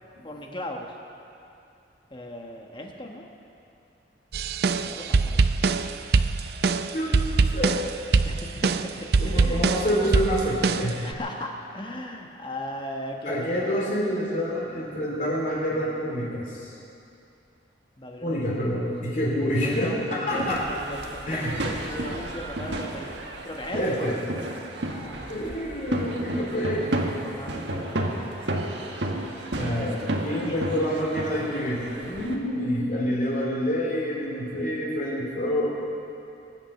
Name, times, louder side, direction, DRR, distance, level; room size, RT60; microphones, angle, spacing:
voice 1, 0.2-0.9 2.1-3.3 4.8-5.5 8.2-9.8 11.0-13.8 18.0-19.1 19.6-24.1 24.9-25.4 27.2-28.7 30.5-30.6, left 1 dB, 25° left, 1 dB, 1.3 m, -37 dB
sound 1, 4.3-11.1, right 4 dB, 60° right, 0.5 m, -23 dB
voice 2, 6.9-7.8 9.2-11.0 13.2-16.7 18.2-20.6 21.2-21.5 23.7-24.1 25.3-26.9 29.5-35.7, equal, 45° left, -5 dB, 3.3 m, -27 dB
sound 2, 20.3-32.4, right 1 dB, 80° right, 1.5 m, -32 dB
22.0 x 8.9 x 6.5 m, 2.6 s
head